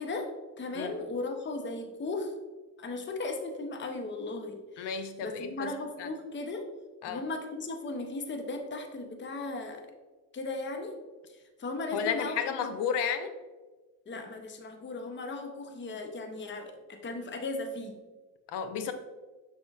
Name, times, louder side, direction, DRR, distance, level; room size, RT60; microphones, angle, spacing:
voice 1, 0.0-2.3 2.8-6.7 7.1-9.9 10.3-11.0 11.3-12.5 14.1-18.0, left 2 dB, 25° left, 5 dB, 0.7 m, -37 dB
voice 2, 4.8-5.7 6.0-6.1 7.0-7.2 11.9-13.3 18.5-18.9, left 7 dB, 65° left, 9 dB, 0.7 m, -32 dB
6.1 x 3.6 x 2.4 m, 1.3 s
supercardioid pair, 60°, 44 cm